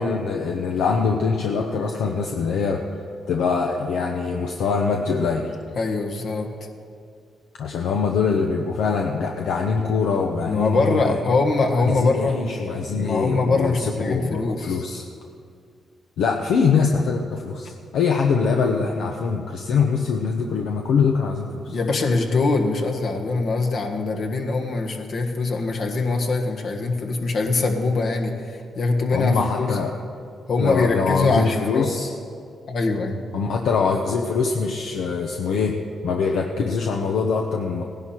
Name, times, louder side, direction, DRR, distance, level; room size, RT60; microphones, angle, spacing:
voice 1, 0.0-2.8 3.3-5.5 7.6-11.2 11.9-15.0 16.2-21.8 29.1-29.9 30.6-32.1 33.3-37.8, left 5 dB, 80° left, 1 dB, 0.8 m, -23 dB
voice 2, 5.7-6.5 10.4-12.4 12.9-14.8 21.7-29.8 30.5-31.9 32.7-33.2, left 3 dB, 65° left, 2 dB, 1.6 m, -23 dB
17.5 x 10.5 x 4.4 m, 2.3 s
supercardioid pair, 65°, 0 cm